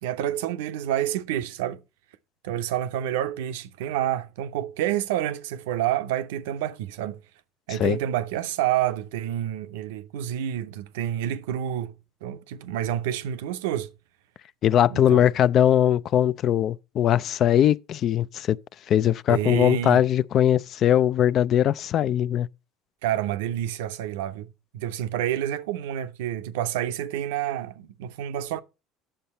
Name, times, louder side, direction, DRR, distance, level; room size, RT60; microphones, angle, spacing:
voice 1, 0.0-1.8 2.4-7.2 7.7-11.9 12.2-13.9 14.9-15.3 19.3-20.0 23.0-28.6, right 11 dB, 90° right, 0.6 m, -28 dB
voice 2, 14.6-18.6 18.9-22.5, left 10 dB, 50° left, 0.4 m, -21 dB
8.7 x 7.0 x 4.3 m
supercardioid pair, 100°, 0 cm